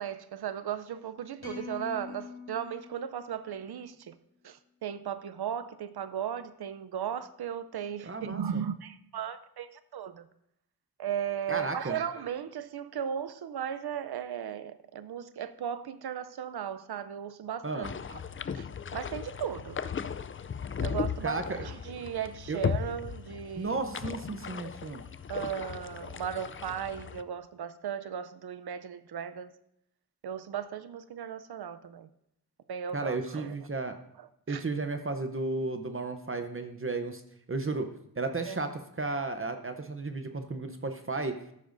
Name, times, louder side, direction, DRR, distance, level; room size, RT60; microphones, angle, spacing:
voice 1, 0.0-4.2 4.4-10.3 11.0-18.2 18.5-18.7 18.9-19.8 20.8-23.8 25.3-29.5 30.2-32.1 32.7-33.5 34.2-34.6 38.4-38.6, right 9 dB, 85° right, 0.6 m, -36 dB
sound 1, 1.4-3.8, left 5 dB, 80° left, 3.1 m, -44 dB
voice 2, 8.1-8.6 11.5-12.0 17.6-17.9 21.2-21.7 22.5-22.6 23.6-25.0 32.9-34.0 34.5-37.2 37.5-37.9 38.2-38.7 39.0-41.4, right 3 dB, 35° right, 0.7 m, -33 dB
sound 2, 17.8-27.2, left 7 dB, 35° left, 0.4 m, -37 dB
13.5 x 11.5 x 2.6 m
wide cardioid pair, 105°, 38 cm